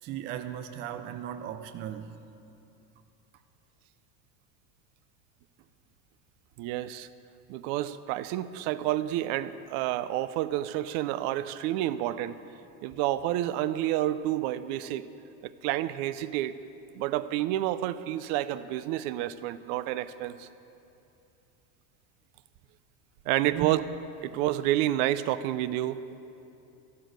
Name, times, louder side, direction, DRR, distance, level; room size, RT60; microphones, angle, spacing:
voice 1, 0.0-2.2 23.4-23.7, right 10 dB, 25° right, 9 dB, 0.3 m, -37 dB
voice 2, 6.6-7.1 7.5-12.4 12.8-15.1 15.4-16.5 16.9-20.5 23.3-23.8 24.2-26.2, right 14 dB, 55° right, 14 dB, 0.6 m, -29 dB
13.5 x 12.5 x 6.4 m, 2.7 s
supercardioid pair, 135°, 48 cm